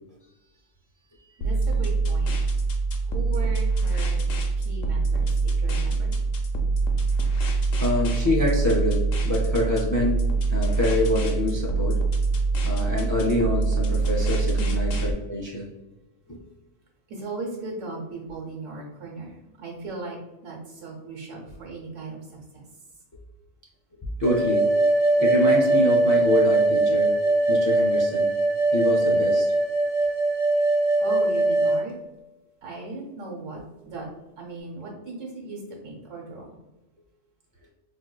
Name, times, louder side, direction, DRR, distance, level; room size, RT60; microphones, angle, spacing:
sound 1, 1.4-15.1, right 3 dB, 90° left, 1.0 m, -24 dB
voice 1, 1.4-2.4 3.1-4.2 4.6-6.1 14.6-14.8 17.1-20.2 20.4-22.2 31.0-31.9 32.6-33.6 33.8-34.1 34.4-36.5, right 3 dB, 75° right, -1 dB, 1.3 m, -37 dB
voice 2, 7.8-12.0 12.6-15.7 16.3-16.4 24.2-24.7 25.2-27.2 27.5-28.3 28.7-29.5 33.5-33.6, left 1 dB, 30° left, -3 dB, 0.3 m, -26 dB
sound 2, 24.2-31.8, right 2 dB, 55° right, 1.0 m, -21 dB
4.3 x 2.6 x 2.3 m, 1.0 s
omnidirectional pair, 1.3 m